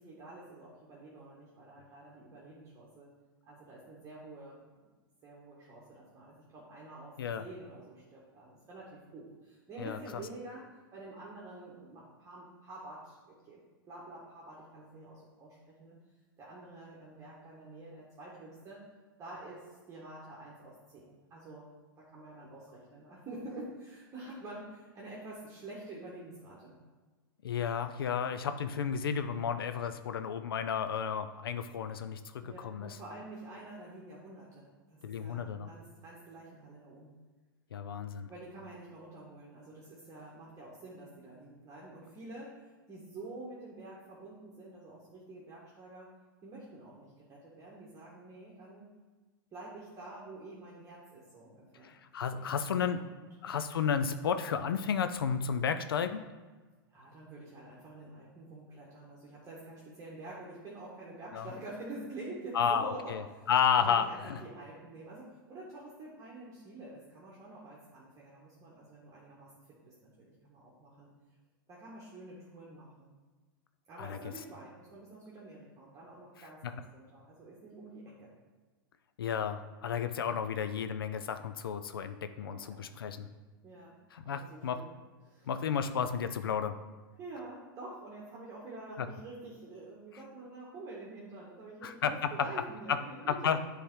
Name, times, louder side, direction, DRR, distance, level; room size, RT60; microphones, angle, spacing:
voice 1, 0.0-3.1 3.5-4.6 5.2-13.6 13.9-16.0 16.4-18.8 19.2-21.7 22.0-26.7 32.4-37.1 38.3-42.6 42.9-46.1 46.4-48.9 49.5-52.0 52.3-53.0 56.9-63.5 63.8-69.5 69.8-71.1 71.7-73.1 73.9-78.3 82.4-82.9 83.6-84.0 84.2-85.0 85.2-85.5 87.2-93.6, right 2 dB, 25° right, -6 dB, 1.4 m, -48 dB
voice 2, 9.8-10.2 27.4-33.0 35.0-35.7 37.7-38.3 52.1-53.0 53.4-56.2 61.3-61.5 62.5-63.2 63.5-64.4 74.0-74.2 79.2-83.3 84.1-84.8 85.5-86.7 91.8-92.3 92.9-93.0 93.3-93.6, left 7 dB, 85° left, 9 dB, 0.4 m, -32 dB
7.2 x 3.5 x 4.6 m, 1.3 s
hypercardioid pair, 110°, 12 cm